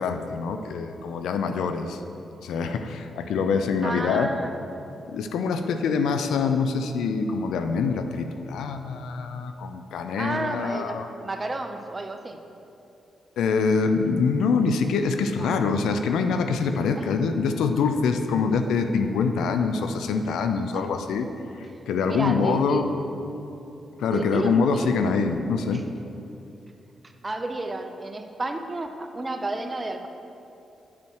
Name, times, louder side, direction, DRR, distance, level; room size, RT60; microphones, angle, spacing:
voice 1, 0.0-2.0 2.4-4.3 5.1-11.1 13.4-21.3 21.9-22.8 24.0-25.8, left 5 dB, 85° left, 7 dB, 0.5 m, -25 dB
voice 2, 3.8-4.6 10.2-12.4 15.4-15.5 17.0-17.1 20.7-20.9 22.1-22.8 24.1-24.9 25.7-25.8 27.0-30.1, right 2 dB, 30° right, 6 dB, 0.8 m, -31 dB
7.7 x 7.4 x 4.6 m, 2.8 s
supercardioid pair, 55°, 0 cm